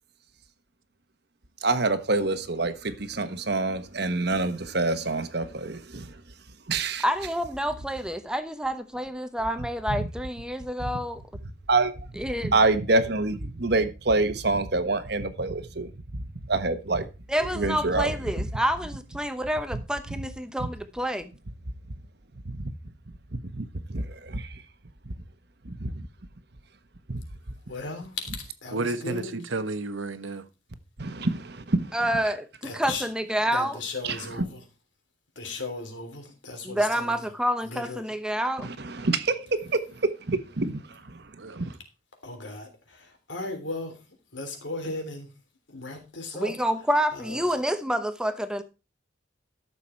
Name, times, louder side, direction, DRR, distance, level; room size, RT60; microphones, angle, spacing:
voice 1, 1.6-6.2 6.7-7.0 9.9-10.1 10.8-10.9 11.7-12.1 12.4-17.1 17.5-18.5 19.7-19.8 20.6-20.7 22.4-22.7 23.4-24.6 25.0-25.1 25.6-26.1 27.1-27.2 31.0-32.0 34.0-34.5 38.6-41.8, right 3 dB, 55° right, 1.2 m, -27 dB
voice 2, 7.0-11.2 12.2-12.5 17.3-21.3 31.9-33.8 36.6-38.7 46.3-48.6, equal, 5° right, 0.9 m, -28 dB
voice 3, 27.7-29.4 32.6-33.1 33.4-34.6 35.4-37.2 37.6-38.0 42.2-44.0 44.3-45.3 45.7-46.6 47.1-47.5, left 3 dB, 75° left, 3.4 m, -36 dB
voice 4, 28.7-30.5 41.4-41.6, right 3 dB, 90° right, 1.1 m, -31 dB
13.0 x 7.0 x 4.5 m
head